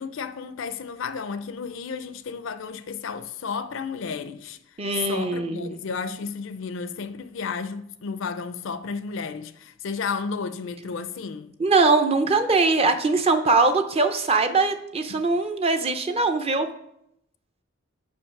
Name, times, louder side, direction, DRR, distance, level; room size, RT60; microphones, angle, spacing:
voice 1, 0.0-11.5 15.1-15.2, left 5 dB, 65° left, 0.4 m, -33 dB
voice 2, 4.8-5.7 11.6-16.7, right 3 dB, 30° right, 0.5 m, -21 dB
5.3 x 5.2 x 5.9 m
head